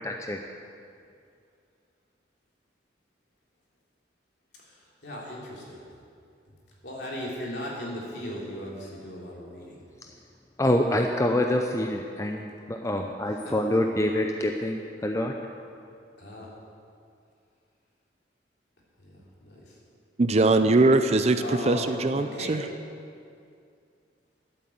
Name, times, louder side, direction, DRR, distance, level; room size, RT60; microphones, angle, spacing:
voice 1, 0.0-0.4 10.6-14.8 15.0-15.3, left 1 dB, 15° left, 3 dB, 0.5 m, -26 dB
voice 2, 4.6-5.9 6.8-9.8 13.3-13.8 16.2-16.5 19.0-19.8 21.4-22.7, left 1 dB, 65° left, -4 dB, 3.4 m, -38 dB
voice 3, 20.2-22.6, right 2 dB, 35° right, 9 dB, 0.5 m, -21 dB
12.0 x 8.4 x 7.9 m, 2.4 s
head